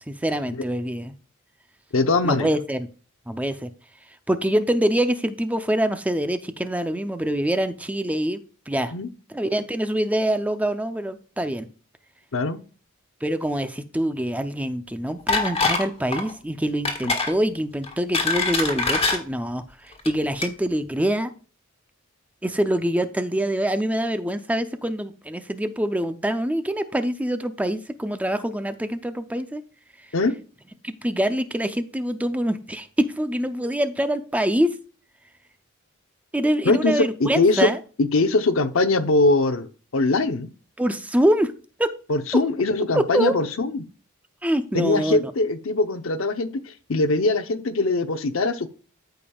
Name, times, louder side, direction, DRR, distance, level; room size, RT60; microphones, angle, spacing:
voice 1, 0.1-1.1 2.2-2.9 3.3-3.7 4.3-8.4 8.7-8.9 9.3-11.7 13.2-19.6 20.1-21.3 22.4-29.6 30.8-34.7 36.3-37.8 40.8-41.5 41.8-41.9 42.3-42.4 42.9-43.4 44.4-45.3, right 1 dB, 5° right, 9 dB, 0.5 m, -25 dB
voice 2, 1.9-2.5 8.9-9.1 12.3-12.6 17.0-17.1 30.1-30.3 36.6-37.7 38.0-40.5 42.1-43.8 44.7-48.7, left 3 dB, 70° left, 10 dB, 0.8 m, -22 dB
sound 1, 15.3-15.9 16.1-16.3 16.8-17.3 17.8-19.2 19.9-20.1 20.4-20.5, left 3 dB, 30° left, 1.6 m, -23 dB
13.5 x 5.2 x 2.3 m, 0.38 s
head